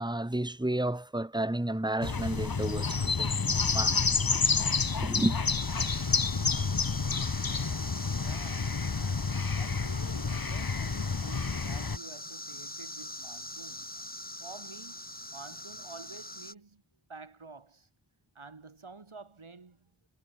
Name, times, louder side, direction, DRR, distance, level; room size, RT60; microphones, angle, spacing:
voice 1, 0.0-4.0 5.0-5.4, right 1 dB, 10° right, 1.9 m, -31 dB
sound 1, 2.0-12.0, left 4 dB, 45° left, 1.3 m, -29 dB
sound 2, 5.6-16.5, left 1 dB, 20° left, 7.9 m, -43 dB
voice 2, 8.2-14.1 14.4-16.8 17.1-17.9 18.3-19.9, right 4 dB, 85° right, 6.3 m, -49 dB
wide cardioid pair, 50°, 48 cm